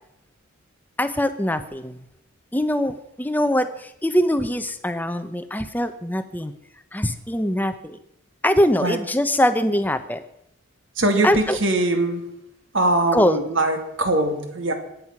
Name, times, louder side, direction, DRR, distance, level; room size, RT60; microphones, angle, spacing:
voice 1, 1.0-2.0 2.5-6.5 6.9-8.0 8.4-10.2 11.2-11.6 13.1-13.4, equal, 10° left, 10 dB, 0.8 m, -22 dB
voice 2, 11.0-12.2 12.7-14.7, right 2 dB, 60° right, 5 dB, 2.5 m, -21 dB
23.5 x 9.3 x 6.0 m, 0.81 s
head